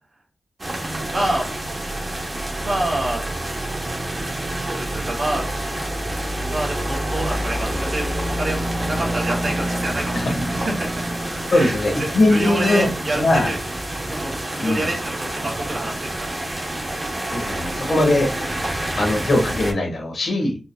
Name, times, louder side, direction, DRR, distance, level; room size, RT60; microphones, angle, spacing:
sound 1, 0.6-19.7, right 1 dB, 30° right, 1.0 m, -27 dB
voice 1, 1.1-1.5 2.6-3.2 4.6-5.4 6.4-11.2 11.5-13.6 14.0-16.3, right 1 dB, 55° right, -2 dB, 1.6 m, -27 dB
voice 2, 11.5-12.9 13.1-13.5 14.6-14.9 17.3-18.3 18.8-20.6, left 2 dB, 75° left, 0 dB, 1.5 m, -20 dB
4.6 x 2.6 x 2.3 m, 0.31 s
wide cardioid pair, 120°, 0 cm